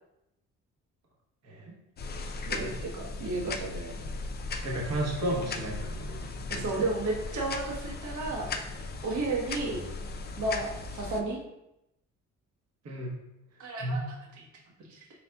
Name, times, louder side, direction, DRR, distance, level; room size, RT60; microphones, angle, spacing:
voice 1, 1.4-1.7 2.3-2.7 4.6-6.9 12.8-13.2 13.8-14.1, right 1 dB, 60° right, -2 dB, 1.0 m, -34 dB
sound 1, 2.0-11.2, left 3 dB, 35° left, 0.4 m, -37 dB
voice 2, 2.5-4.1 6.5-8.5 9.0-9.8 10.4-11.4 13.6-14.0 14.9-15.1, right 2 dB, 75° right, -2 dB, 1.2 m, -32 dB
4.4 x 4.0 x 2.3 m, 0.88 s
cardioid pair, 90°, 30 cm